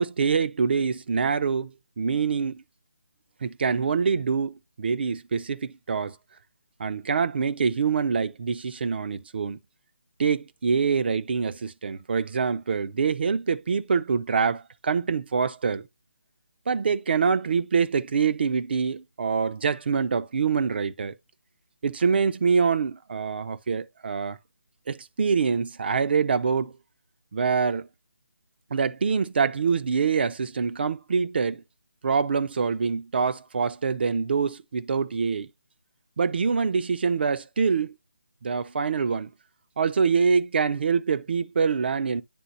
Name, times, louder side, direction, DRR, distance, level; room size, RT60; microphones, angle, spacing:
voice 1, 0.0-2.6 3.4-6.2 6.8-9.6 10.2-15.9 16.7-21.1 21.8-24.4 24.9-26.8 27.3-27.9 28.7-31.6 32.0-35.5 36.2-37.9 38.4-39.3 39.8-42.2, right 5 dB, 50° right, 0.5 m, -25 dB
10.0 x 3.9 x 2.5 m
figure-of-eight pair, 155°, 7 cm